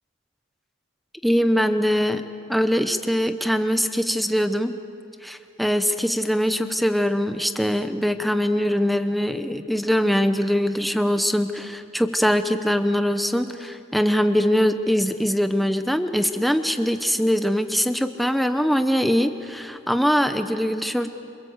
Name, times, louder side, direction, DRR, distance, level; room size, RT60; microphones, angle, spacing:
voice 1, 1.2-4.7 5.2-21.1, equal, ahead, 8 dB, 0.9 m, -22 dB
27.5 x 26.5 x 8.1 m, 2.7 s
head